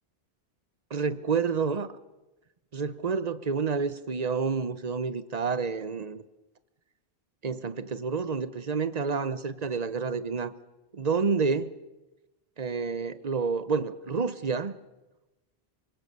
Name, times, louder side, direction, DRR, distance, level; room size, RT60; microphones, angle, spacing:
voice 1, 0.9-1.9 2.7-6.2 7.4-10.5 10.9-11.7 12.6-14.8, right 5 dB, 40° right, 14 dB, 1.0 m, -29 dB
24.5 x 21.0 x 6.8 m, 1.0 s
omnidirectional pair, 1.1 m